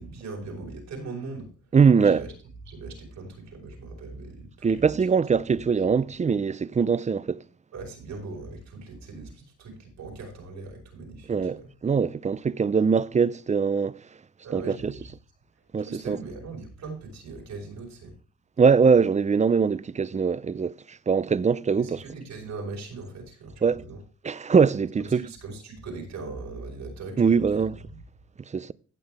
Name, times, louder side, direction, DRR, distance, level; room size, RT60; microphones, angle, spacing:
voice 1, 0.0-1.5 2.0-2.3 2.6-5.0 5.9-6.0 7.7-11.7 14.4-15.1 15.8-18.1 21.8-24.0 25.1-28.0, right 3 dB, 65° right, 5.1 m, -40 dB
voice 2, 1.7-2.2 4.6-7.4 11.3-14.0 14.5-14.9 15.7-16.2 18.6-22.0 23.6-23.8 24.2-25.2 27.2-27.7 28.4-28.7, right 5 dB, 25° right, 0.5 m, -22 dB
16.0 x 6.2 x 3.5 m
cardioid pair, 90°, 30 cm